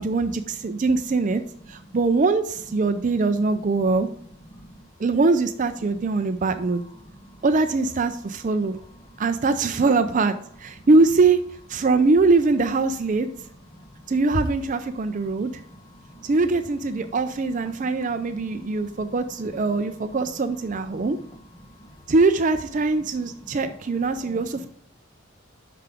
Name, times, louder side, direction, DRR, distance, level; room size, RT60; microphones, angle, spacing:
voice 1, 0.0-1.4 1.7-4.1 5.0-6.8 7.4-8.8 9.2-11.4 11.7-13.3 14.1-15.5 16.2-21.2 22.1-24.7, right 3 dB, 35° right, 9 dB, 0.4 m, -22 dB
voice 2, 6.7-7.4 9.1-9.2 10.8-10.9 13.7-14.0 15.3-16.3 17.0-17.1 17.8-19.1 20.9-21.3 21.6-21.9 23.4-23.8 24.3-24.4, equal, 15° left, 4 dB, 1.0 m, -47 dB
7.3 x 5.8 x 3.4 m, 0.64 s
head